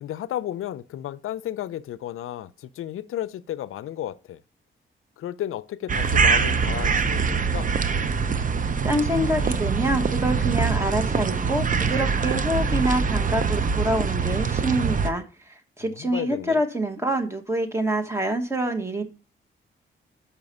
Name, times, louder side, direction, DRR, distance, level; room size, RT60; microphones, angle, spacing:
voice 1, 0.0-4.4 5.2-7.7 15.8-16.6, left 12 dB, 85° left, 0.4 m, -33 dB
sound 1, 5.9-15.1, right 5 dB, 40° right, 0.6 m, -24 dB
voice 2, 8.8-15.2 15.8-19.0, right 1 dB, 15° right, 1.2 m, -26 dB
5.8 x 5.6 x 5.3 m
wide cardioid pair, 125°, 21 cm